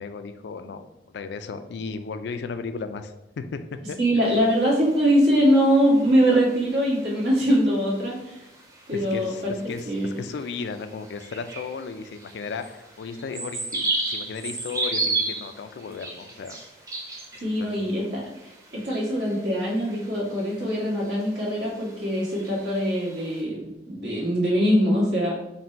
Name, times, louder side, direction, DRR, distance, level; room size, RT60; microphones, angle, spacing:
voice 1, 0.0-3.6 3.9-4.3 8.9-16.6 17.3-17.9, left 5 dB, 75° left, 10 dB, 0.3 m, -35 dB
voice 2, 4.0-8.4 8.9-9.3 9.8-10.1 17.4-18.2 18.7-25.3, equal, 85° right, -5 dB, 1.5 m, -22 dB
sound 1, 4.2-23.4, right 3 dB, 20° right, 0.6 m, -36 dB
4.1 x 2.2 x 4.3 m, 0.89 s
head